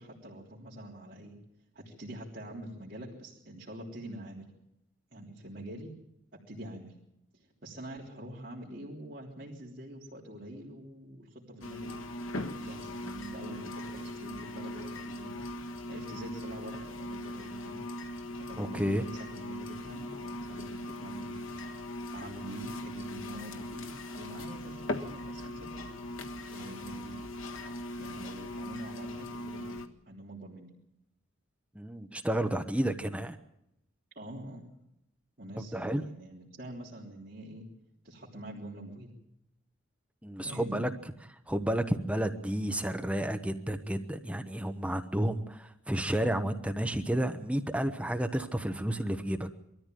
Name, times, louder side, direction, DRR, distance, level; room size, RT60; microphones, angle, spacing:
voice 1, 0.0-1.3 1.7-4.5 5.1-5.9 6.5-6.9 7.3-12.0 12.6-15.5 15.9-17.8 18.4-21.4 22.1-25.9 26.5-27.2 28.0-30.7 34.1-34.6 35.4-37.6 38.0-39.1 40.4-40.9, right 1 dB, 45° right, -5 dB, 3.4 m, -45 dB
sound 1, 11.6-29.9, left 1 dB, 85° left, 1.6 m, -40 dB
voice 2, 18.6-19.0 31.7-33.4 35.7-36.0 40.2-40.9 41.5-49.5, right 1 dB, 5° right, 6 dB, 1.0 m, -31 dB
22.5 x 14.0 x 9.1 m, 0.83 s
head